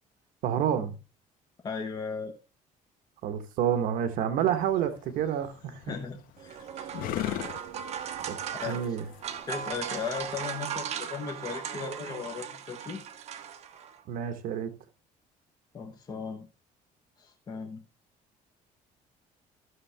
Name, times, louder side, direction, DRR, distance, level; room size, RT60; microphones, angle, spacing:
voice 1, 0.4-1.0 3.2-5.9 8.2-9.0 14.1-14.7, right 9 dB, 75° right, 1.1 m, -29 dB
voice 2, 1.6-2.3 5.9-6.6 8.0-9.0 9.5-13.0 15.7-16.5 17.2-17.8, left 5 dB, 30° left, 1.1 m, -37 dB
sound 1, 4.4-10.5, left 13 dB, 80° left, 0.8 m, -40 dB
sound 2, 6.4-14.0, right 8 dB, 50° right, 1.0 m, -38 dB
13.0 x 6.5 x 3.4 m
cardioid pair, 165°, 15 cm